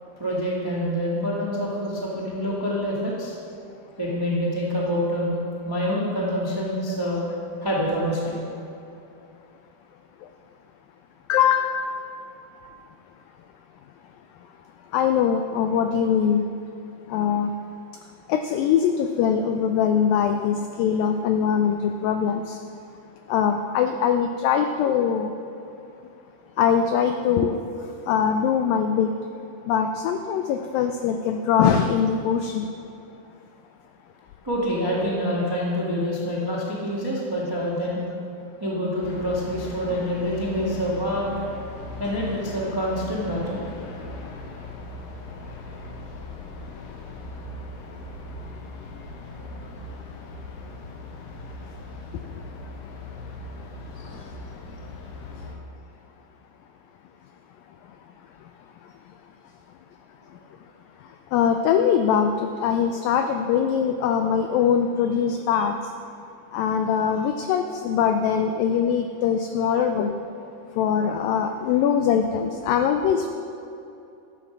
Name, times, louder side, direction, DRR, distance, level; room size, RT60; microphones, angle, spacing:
voice 1, 0.2-3.4 4.0-7.2 7.6-8.4 34.4-38.0 38.6-41.3 42.0-43.6 54.0-54.1, equal, 40° right, -5 dB, 0.3 m, -26 dB
voice 2, 11.3-12.0 14.9-16.5 17.1-17.5 18.3-22.6 23.3-25.3 26.6-27.6 28.1-29.1 29.7-32.7 54.0-54.1 61.3-65.9 66.5-70.1 70.8-73.3, left 7 dB, 85° left, 6 dB, 2.0 m, -22 dB
sound 1, 39.0-55.6, left 2 dB, 70° left, 2.4 m, -39 dB
13.5 x 8.0 x 6.0 m, 2.8 s
omnidirectional pair, 4.6 m